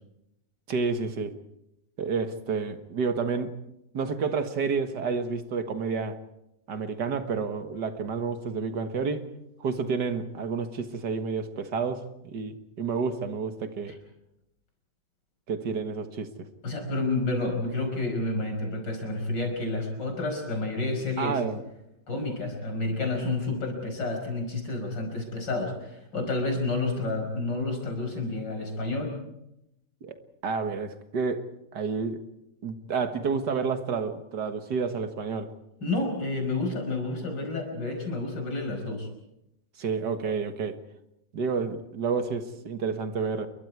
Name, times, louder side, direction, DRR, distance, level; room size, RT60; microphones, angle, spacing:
voice 1, 0.7-1.4 2.0-3.5 3.9-6.2 6.7-9.3 9.6-13.9 15.5-16.5 21.2-21.6 30.0-30.2 30.4-31.5 31.7-32.2 32.6-35.5 39.8-40.8 41.3-43.5, right 5 dB, 75° right, 8 dB, 2.1 m, -30 dB
voice 2, 16.6-21.4 22.1-29.1 35.8-39.1, left 2 dB, 85° left, 4 dB, 5.9 m, -30 dB
28.0 x 23.5 x 4.7 m, 0.85 s
omnidirectional pair, 1.9 m